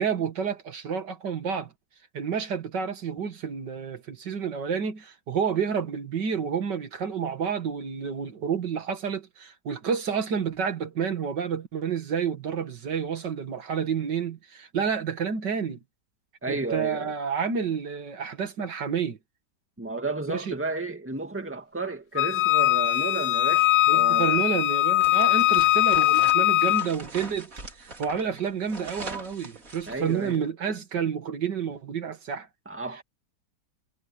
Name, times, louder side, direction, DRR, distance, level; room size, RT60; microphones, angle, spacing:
voice 1, 0.0-1.7 2.1-15.8 16.5-19.2 20.3-20.5 23.9-32.5, right 6 dB, 80° right, 2.5 m, -29 dB
voice 2, 16.4-17.1 19.8-24.4 29.9-30.4 32.7-33.0, right 3 dB, 5° right, 2.0 m, -32 dB
Wind instrument woodwind instrument, 22.2-26.9, left 16 dB, 90° left, 1.3 m, -21 dB
sound 1, 25.0-30.5, right 3 dB, 50° right, 4.0 m, -42 dB
omnidirectional pair, 1.8 m